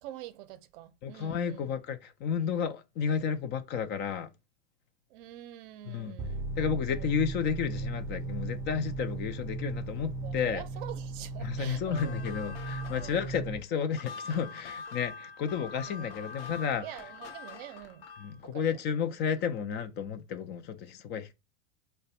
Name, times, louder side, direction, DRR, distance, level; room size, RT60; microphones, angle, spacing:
voice 1, 0.0-1.8 5.1-6.6 6.9-7.1 10.2-12.2 12.9-13.3 15.9-16.4 16.8-18.1 18.5-18.8, right 13 dB, 55° right, 0.6 m, -46 dB
voice 2, 1.0-4.3 5.8-6.1 6.6-10.6 11.4-16.8 18.2-21.3, left 7 dB, 35° left, 0.4 m, -32 dB
sound 1, 6.2-13.6, right 3 dB, 10° right, 0.6 m, -37 dB
sound 2, 11.8-18.4, left 5 dB, 70° left, 0.8 m, -45 dB
3.2 x 2.2 x 4.1 m
hypercardioid pair, 115°, 32 cm